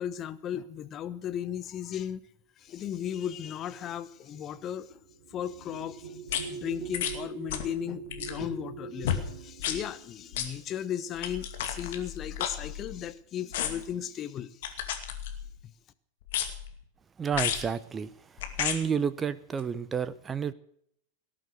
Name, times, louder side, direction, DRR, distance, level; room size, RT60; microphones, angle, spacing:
voice 1, 0.0-2.2 2.6-5.0 5.3-14.5, left 9 dB, 30° left, 1.1 m, -36 dB
sound 1, 2.9-11.8 12.7-12.9 13.2-13.8, right 7 dB, 55° right, 3.4 m, -45 dB
sound 2, 6.3-6.4 6.9-7.2 7.5-7.7 8.0-8.4 9.0-9.2 9.6-9.8 10.3-10.5 11.2-13.1 13.5-13.9 14.6-15.6 16.3-16.7 17.3-17.7 18.4-18.8 19.6-19.7, left 9 dB, 55° left, 2.4 m, -32 dB
voice 2, 17.2-18.1 18.6-20.5, right 7 dB, 20° right, 0.8 m, -30 dB
18.5 x 11.0 x 6.5 m
figure-of-eight pair, 90°, 0 cm